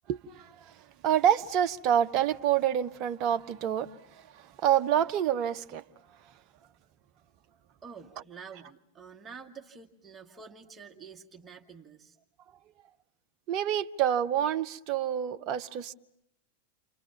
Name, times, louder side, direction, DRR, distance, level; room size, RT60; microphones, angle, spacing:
voice 1, 0.1-0.7 1.0-3.9 4.6-5.8 13.5-15.9, right 10 dB, 40° right, 1.0 m, -27 dB
voice 2, 7.8-12.2, right 6 dB, 15° right, 2.1 m, -48 dB
30.0 x 26.0 x 7.2 m
figure-of-eight pair, 90°, 0 cm